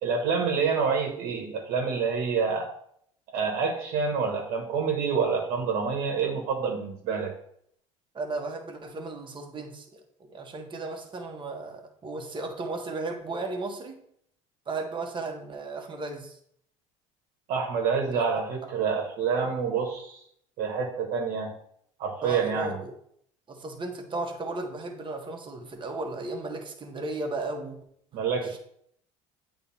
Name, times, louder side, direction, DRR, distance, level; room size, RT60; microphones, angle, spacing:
voice 1, 0.0-2.7 3.3-7.3 17.5-20.2 20.6-21.5 22.0-22.8 28.1-28.6, right 5 dB, 65° right, 1 dB, 1.4 m, -27 dB
voice 2, 8.1-14.0 14.7-16.4 18.1-18.3 22.2-23.0 23.5-27.8 28.4-28.6, right 3 dB, 30° right, 3 dB, 1.4 m, -35 dB
8.5 x 3.4 x 4.2 m, 0.68 s
hypercardioid pair, 75°, 16 cm